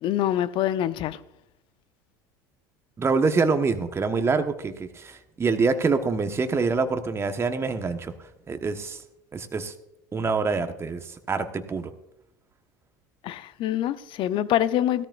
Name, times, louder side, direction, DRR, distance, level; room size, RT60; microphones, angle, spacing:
voice 1, 0.0-1.2 13.2-15.0, left 12 dB, 50° left, 14 dB, 0.7 m, -25 dB
voice 2, 3.0-8.1 8.5-9.0 9.3-9.7 10.1-11.0 11.3-11.9, right 4 dB, 25° right, 7 dB, 1.3 m, -25 dB
17.0 x 13.5 x 2.5 m, 0.83 s
hypercardioid pair, 75°, 11 cm